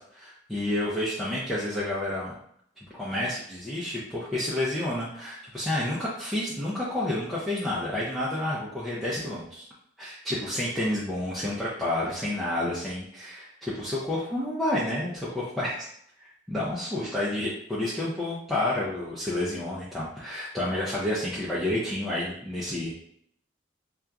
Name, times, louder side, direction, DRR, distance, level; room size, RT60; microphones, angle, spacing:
voice 1, 0.1-2.3 2.9-9.6 10.0-15.8 16.5-23.0, left 1 dB, ahead, -9 dB, 0.4 m, -30 dB
2.8 x 2.3 x 2.3 m, 0.68 s
head